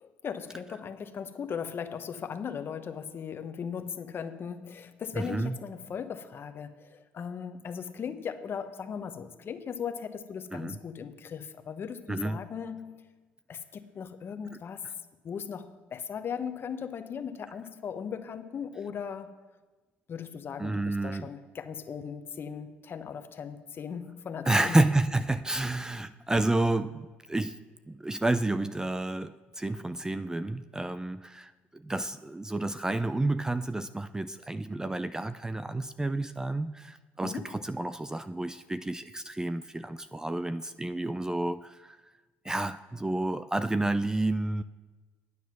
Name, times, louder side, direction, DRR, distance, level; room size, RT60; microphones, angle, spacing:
voice 1, 0.0-13.0 13.5-14.9 15.2-19.3 20.1-24.8 37.2-37.6, left 7 dB, 45° left, 8 dB, 1.0 m, -38 dB
voice 2, 5.1-5.6 10.5-10.8 12.1-12.4 20.6-21.3 24.5-27.6 27.9-42.0 42.4-44.6, right 2 dB, 10° right, 13 dB, 0.4 m, -30 dB
9.4 x 9.2 x 6.0 m, 1.2 s
hypercardioid pair, 65°, 6 cm